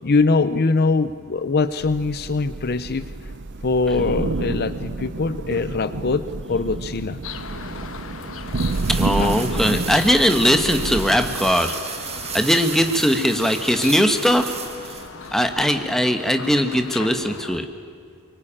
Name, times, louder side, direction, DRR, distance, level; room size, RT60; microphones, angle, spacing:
voice 1, 0.0-3.0 3.6-7.2 9.2-9.8, left 3 dB, 45° left, 13 dB, 0.6 m, -22 dB
Thunder / Rain, 1.8-11.5, right 3 dB, 55° right, 0.7 m, -29 dB
sound 1, 7.2-17.6, left 5 dB, 65° left, 1.3 m, -37 dB
sound 2, 7.7-15.5, right 6 dB, 30° right, 2.0 m, -35 dB
voice 2, 8.9-11.8 12.3-14.6 15.3-17.7, equal, ahead, 6 dB, 1.3 m, -20 dB
24.0 x 23.5 x 8.8 m, 2.3 s
head